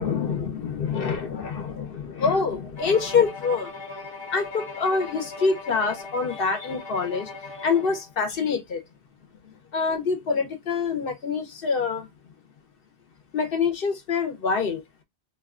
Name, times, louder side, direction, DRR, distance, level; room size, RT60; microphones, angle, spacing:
voice 1, 0.0-3.8 4.3-7.3 7.6-8.8 9.4-12.1 13.3-14.8, left 5 dB, 60° left, 1.0 m, -26 dB
Bowed string instrument, 2.8-8.1, left 3 dB, 25° left, 1.0 m, -39 dB
2.7 x 2.3 x 3.6 m
omnidirectional pair, 1.1 m